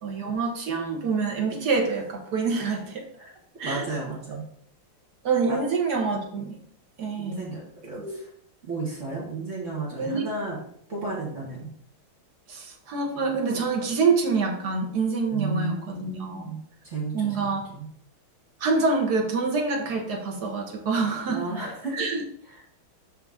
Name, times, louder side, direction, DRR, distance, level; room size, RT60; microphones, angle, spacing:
voice 1, 0.0-3.0 3.6-3.8 5.2-6.6 7.0-7.4 8.0-8.1 10.0-10.3 12.5-16.5 17.1-17.6 18.6-21.4 21.9-22.2, right 4 dB, 55° right, 2 dB, 1.6 m, -26 dB
voice 2, 3.6-4.4 5.5-5.7 7.2-8.3 8.6-10.6 10.9-11.7 15.3-16.6 16.8-17.9 21.3-22.0 22.5-22.6, right 3 dB, 35° right, -5 dB, 2.1 m, -33 dB
6.8 x 5.7 x 3.6 m, 0.66 s
omnidirectional pair, 2.4 m